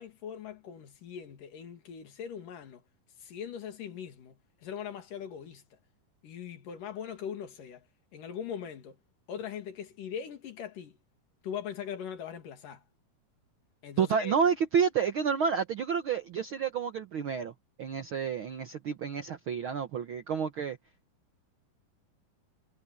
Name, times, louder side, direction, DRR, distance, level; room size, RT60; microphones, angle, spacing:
voice 1, 0.0-2.8 3.2-5.6 6.2-7.8 8.1-9.0 9.3-11.0 11.4-12.8 13.8-14.4, left 8 dB, 80° left, 3.9 m, -41 dB
voice 2, 14.0-17.5 17.8-20.8, right 6 dB, 70° right, 1.2 m, -29 dB
omnidirectional pair, 3.8 m